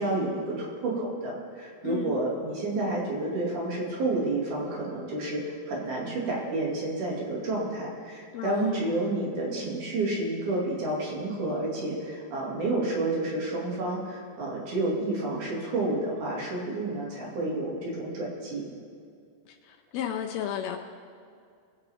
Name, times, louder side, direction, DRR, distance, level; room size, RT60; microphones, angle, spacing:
voice 1, 0.0-18.7, right 2 dB, 70° right, -4 dB, 3.8 m, -30 dB
voice 2, 8.3-8.8 19.9-20.8, left 10 dB, 85° left, 4 dB, 1.4 m, -32 dB
22.5 x 8.3 x 3.5 m, 2.3 s
omnidirectional pair, 3.7 m